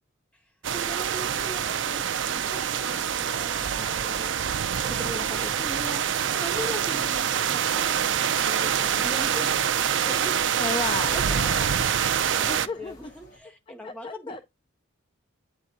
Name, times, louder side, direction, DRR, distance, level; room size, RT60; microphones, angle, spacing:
sound 1, 0.6-12.7, right 8 dB, 65° right, 0.5 m, -26 dB
voice 1, 0.7-4.3 4.8-10.4 11.1-14.4, equal, 5° left, 1.1 m, -40 dB
sound 2, 2.8-13.4, equal, 45° left, 2.8 m, -52 dB
Motorcycle / Engine, 5.8-13.4, left 2 dB, 70° left, 0.8 m, -50 dB
voice 2, 10.6-11.8 12.4-13.1 13.8-14.4, left 4 dB, 25° left, 0.3 m, -34 dB
8.8 x 4.5 x 3.9 m
head